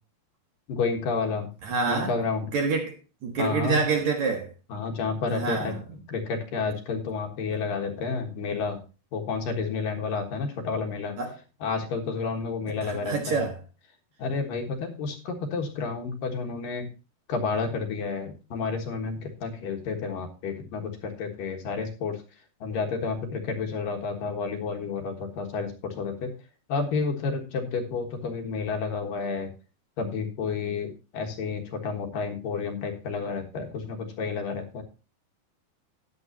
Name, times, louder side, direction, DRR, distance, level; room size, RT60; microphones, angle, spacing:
voice 1, 0.7-1.5 1.9-2.5 3.4-3.8 4.7-5.8 6.1-8.8 9.1-11.2 11.6-13.4 14.2-16.9 17.3-22.2 22.6-26.3 26.7-29.5 30.0-34.8, left 4 dB, 65° left, 2.9 m, -30 dB
voice 2, 1.6-2.2 2.5-3.0 3.2-4.5 5.3-5.8 11.2-11.3 12.8-13.6, right 4 dB, 55° right, 2.3 m, -27 dB
13.5 x 10.0 x 2.8 m
omnidirectional pair, 4.6 m